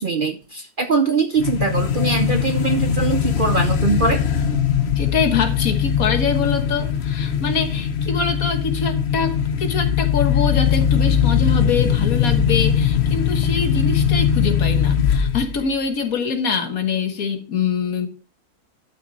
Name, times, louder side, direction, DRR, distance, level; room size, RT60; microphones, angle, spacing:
voice 1, 0.0-4.2, right 4 dB, 45° right, 7 dB, 0.7 m, -22 dB
sound 1, 1.4-15.6, left 8 dB, 50° left, 1.0 m, -20 dB
voice 2, 5.0-18.1, left 5 dB, 70° left, 7 dB, 1.7 m, -24 dB
11.5 x 6.1 x 4.2 m, 0.33 s
omnidirectional pair, 1.6 m